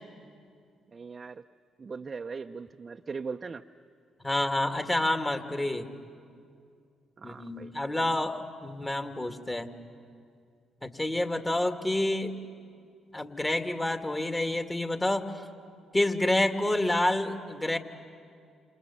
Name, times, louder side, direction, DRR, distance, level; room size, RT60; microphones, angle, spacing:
voice 1, 0.9-1.5 1.8-3.7 7.2-7.7, right 5 dB, 40° right, 5 dB, 0.6 m, -39 dB
voice 2, 4.2-5.9 7.2-9.7 10.8-12.3 13.1-15.3 15.9-17.8, left 1 dB, 20° left, 6 dB, 2.2 m, -28 dB
28.0 x 28.0 x 7.2 m, 2.3 s
hypercardioid pair, 45°, 0 cm